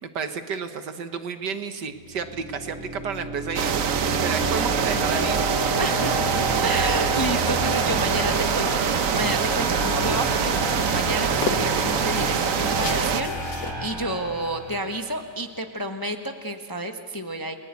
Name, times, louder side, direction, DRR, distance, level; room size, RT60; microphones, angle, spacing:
voice 1, 0.0-5.4 6.4-6.7, right 6 dB, 70° right, 8 dB, 1.9 m, -32 dB
sound 1, 2.0-14.9, equal, 15° right, 6.8 m, -30 dB
sound 2, 3.5-13.2, right 7 dB, 55° right, 1.2 m, -24 dB
voice 2, 5.8-6.3 6.6-17.5, right 1 dB, 15° left, 5 dB, 0.8 m, -30 dB
sound 3, 8.6-15.6, left 3 dB, 85° left, 2.3 m, -38 dB
29.5 x 19.5 x 8.3 m, 2.1 s
omnidirectional pair, 1.9 m